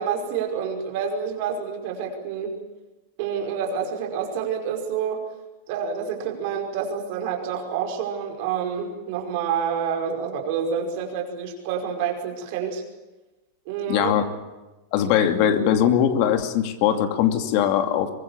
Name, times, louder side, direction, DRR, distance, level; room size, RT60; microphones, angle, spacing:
voice 1, 0.0-2.5 3.2-5.2 5.7-12.8 13.7-14.1, right 7 dB, 50° right, 3 dB, 5.3 m, -28 dB
voice 2, 13.9-14.2 14.9-18.1, left 9 dB, 45° left, 8 dB, 2.7 m, -21 dB
24.5 x 22.5 x 7.3 m, 1.1 s
supercardioid pair, 165°, 0 cm